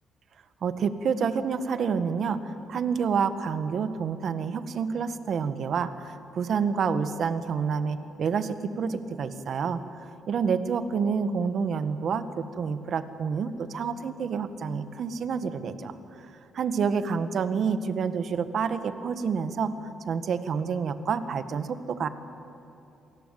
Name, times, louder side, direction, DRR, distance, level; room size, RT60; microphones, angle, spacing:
voice 1, 0.6-9.8 10.3-15.9 16.5-19.7 20.1-22.1, right 6 dB, 60° right, 11 dB, 1.6 m, -28 dB
27.0 x 19.5 x 9.2 m, 2.8 s
cardioid pair, 90°, 0 cm